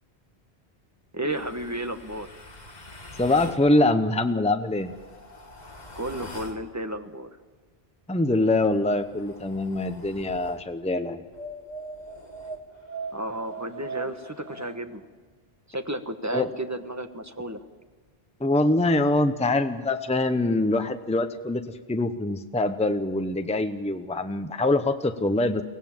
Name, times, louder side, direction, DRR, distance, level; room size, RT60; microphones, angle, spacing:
voice 1, 1.1-2.4 5.9-7.3 13.1-15.1 15.7-17.6, right 1 dB, 15° right, 7 dB, 1.2 m, -32 dB
sound 1, 1.3-3.6 4.6-6.7 8.3-10.7 11.3-14.8, right 2 dB, 45° left, 2.3 m, -42 dB
voice 2, 3.2-4.9 8.1-11.2 16.3-16.5 18.4-21.6 21.9-25.6, left 2 dB, 5° left, 8 dB, 0.9 m, -24 dB
24.0 x 18.0 x 7.4 m, 1.5 s
omnidirectional pair, 1.0 m